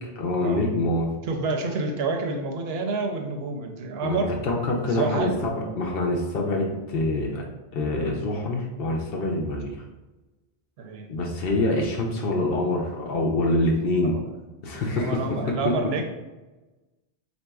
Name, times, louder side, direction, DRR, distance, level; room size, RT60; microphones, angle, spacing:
voice 1, 0.2-1.1 4.0-7.4 7.7-9.8 11.1-14.2 14.6-15.2, left 2 dB, 65° left, 0 dB, 0.7 m, -25 dB
voice 2, 1.3-4.3 4.9-5.4 10.8-11.1 14.1-14.2 14.9-16.0, right 3 dB, 70° right, 2 dB, 0.8 m, -28 dB
4.1 x 2.6 x 2.2 m, 1.1 s
omnidirectional pair, 1.2 m